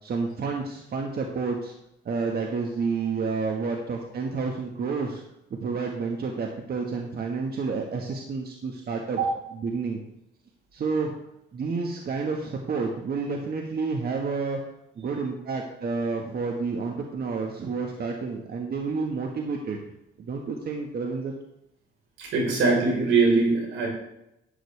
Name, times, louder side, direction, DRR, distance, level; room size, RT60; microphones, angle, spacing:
voice 1, 0.0-1.7 2.0-5.2 5.5-9.2 9.5-10.0 10.7-11.1 11.5-14.6 14.9-19.8 20.2-21.3, right 4 dB, 50° right, 2 dB, 1.4 m, -30 dB
voice 2, 22.2-23.9, right 4 dB, 85° right, -1 dB, 4.1 m, -22 dB
11.5 x 8.9 x 3.3 m, 0.83 s
cardioid pair, 90°, 20 cm